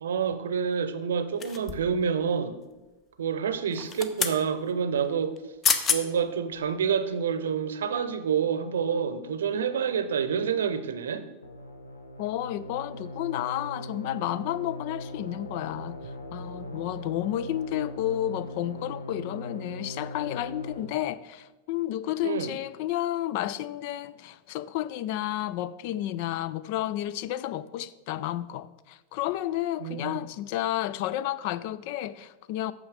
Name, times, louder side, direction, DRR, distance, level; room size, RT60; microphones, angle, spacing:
voice 1, 0.0-2.6 3.2-5.4 5.9-11.3 22.2-22.6 29.8-30.2, right 7 dB, 65° right, 0.7 m, -28 dB
sound 1, 1.4-2.0 3.7-4.4 5.4-5.5 5.6-6.0 6.6-6.7, left 6 dB, 25° left, 0.7 m, -27 dB
sound 2, 11.4-20.8, left 1 dB, 70° left, 0.8 m, -40 dB
voice 2, 12.2-16.0 16.3-32.7, left 13 dB, 45° left, 0.4 m, -31 dB
8.7 x 6.7 x 4.9 m
figure-of-eight pair, 90°, 0 cm